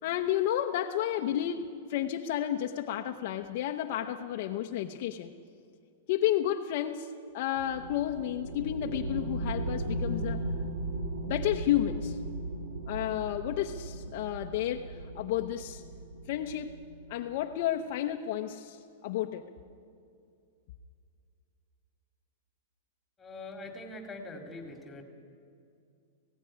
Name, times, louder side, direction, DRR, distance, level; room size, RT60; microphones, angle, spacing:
voice 1, 0.0-5.3 6.1-10.4 11.3-12.2 12.9-15.8 16.3-16.8 17.1-19.5, left 12 dB, 45° left, 4 dB, 0.8 m, -31 dB
sound 1, 7.6-17.6, right 1 dB, 70° right, 2.2 m, -37 dB
voice 2, 23.2-25.0, left 2 dB, 10° left, 3 dB, 2.4 m, -43 dB
18.5 x 16.0 x 9.9 m, 2.4 s
supercardioid pair, 165°, 0 cm